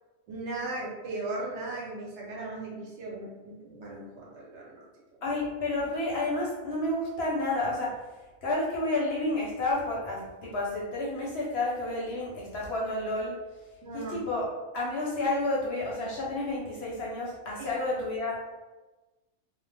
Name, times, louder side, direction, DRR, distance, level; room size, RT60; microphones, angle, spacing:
voice 1, 0.3-4.9 13.8-14.2 17.6-17.7, right 2 dB, 60° right, -3 dB, 0.9 m, -37 dB
voice 2, 5.2-7.9 8.4-13.4 13.9-14.5 14.7-18.4, left 2 dB, 60° left, -4 dB, 0.7 m, -30 dB
2.3 x 2.1 x 3.3 m, 1.2 s
omnidirectional pair, 1.5 m